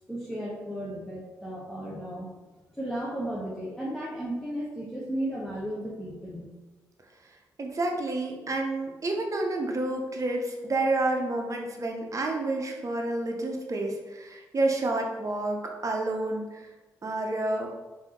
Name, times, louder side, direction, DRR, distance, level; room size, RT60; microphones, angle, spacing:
voice 1, 0.1-2.3 2.7-6.5, right 1 dB, 5° left, -5 dB, 0.8 m, -34 dB
voice 2, 7.6-16.7 17.0-17.7, right 2 dB, 40° right, 1 dB, 0.7 m, -29 dB
3.4 x 2.7 x 2.9 m, 1.2 s
hypercardioid pair, 40°, 8 cm